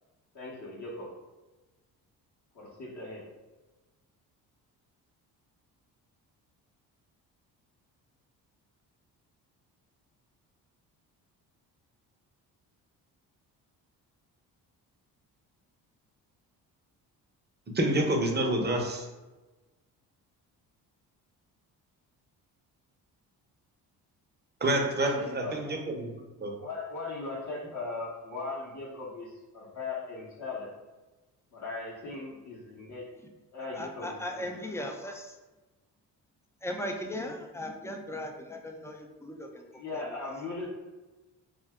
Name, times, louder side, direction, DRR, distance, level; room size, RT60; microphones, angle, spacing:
voice 1, 0.3-1.1 2.5-3.3 24.9-25.8 26.4-30.7 31.5-33.1 33.5-34.5 39.7-40.7, left 3 dB, 40° left, -4 dB, 0.8 m, -39 dB
voice 2, 17.7-19.1 24.6-26.1 26.4-26.5, right 1 dB, 25° right, 2 dB, 0.6 m, -28 dB
voice 3, 33.7-35.4 36.6-39.6 39.9-40.3, left 1 dB, 5° left, 2 dB, 0.3 m, -38 dB
2.6 x 2.2 x 3.4 m, 1.1 s
supercardioid pair, 55°, 44 cm